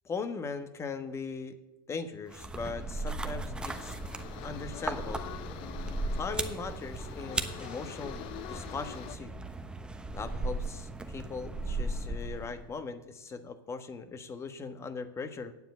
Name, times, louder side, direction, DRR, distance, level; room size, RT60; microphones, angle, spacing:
voice 1, 0.0-1.6 1.9-4.0 4.4-5.2 6.1-8.2 8.5-9.3 10.1-15.5, left 4 dB, 25° left, 10 dB, 1.2 m, -39 dB
sound 1, 2.3-12.7, right 2 dB, 10° right, 1.0 m, -37 dB
sound 2, 3.7-9.2, left 14 dB, 45° left, 0.5 m, -45 dB
9.4 x 7.5 x 8.3 m, 0.95 s
hypercardioid pair, 100°, 12 cm